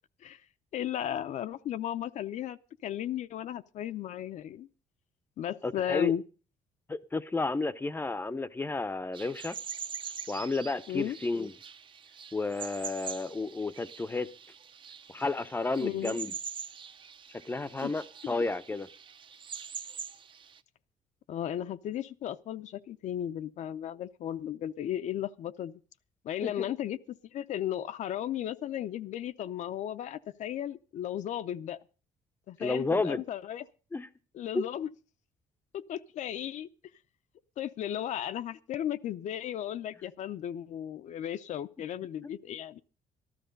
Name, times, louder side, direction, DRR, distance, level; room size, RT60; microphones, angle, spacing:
voice 1, 0.7-4.7 5.4-6.2 10.9-11.2 15.8-16.2 17.8-17.9 21.3-25.8 26.2-31.8 32.5-33.6 34.3-34.9 35.7-36.7 37.6-42.8, left 11 dB, 60° left, 0.6 m, -35 dB
voice 2, 5.6-6.1 6.9-9.6 10.3-11.5 12.3-14.3 15.1-16.3 17.5-18.9 26.4-26.7 32.6-33.2 33.9-34.1, left 3 dB, 15° left, 0.6 m, -32 dB
sound 1, 9.1-20.6, right 7 dB, 35° right, 0.7 m, -44 dB
13.5 x 12.5 x 5.2 m
cardioid pair, 150°, 14 cm